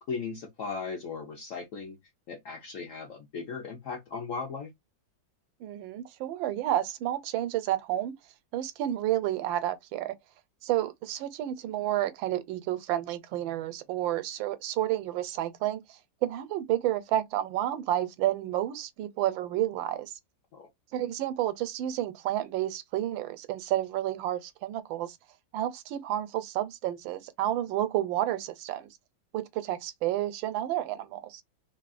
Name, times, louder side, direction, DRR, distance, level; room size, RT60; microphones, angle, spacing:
voice 1, 0.1-2.0 2.3-4.7 20.5-20.7, left 5 dB, 60° left, 0.8 m, -37 dB
voice 2, 5.6-8.1 8.5-10.1 10.6-20.1 20.9-25.2 25.5-28.9 29.3-31.4, right 13 dB, 80° right, 1.3 m, -30 dB
3.6 x 2.0 x 2.4 m
omnidirectional pair, 2.1 m